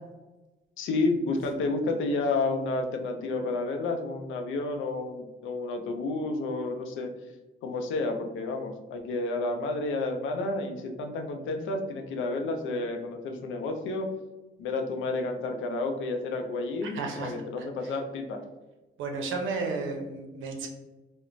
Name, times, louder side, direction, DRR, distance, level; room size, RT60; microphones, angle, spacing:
voice 1, 0.8-7.1 7.6-14.1 14.6-18.4, left 3 dB, 80° left, 4 dB, 0.5 m, -30 dB
voice 2, 16.8-17.3 19.0-20.7, right 3 dB, 80° right, 3 dB, 0.6 m, -33 dB
2.4 x 2.1 x 3.0 m, 1.1 s
cardioid pair, 90°, 20 cm